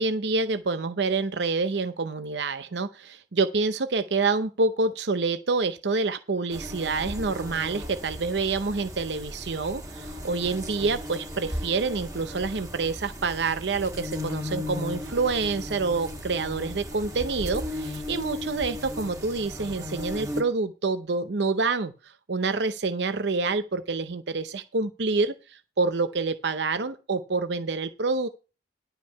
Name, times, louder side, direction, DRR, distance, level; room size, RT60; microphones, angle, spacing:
voice 1, 0.0-28.3, right 3 dB, 70° right, 10 dB, 0.7 m, -27 dB
sound 1, 6.5-20.4, left 1 dB, 20° right, 1.7 m, -36 dB
11.5 x 5.7 x 5.6 m, 0.32 s
head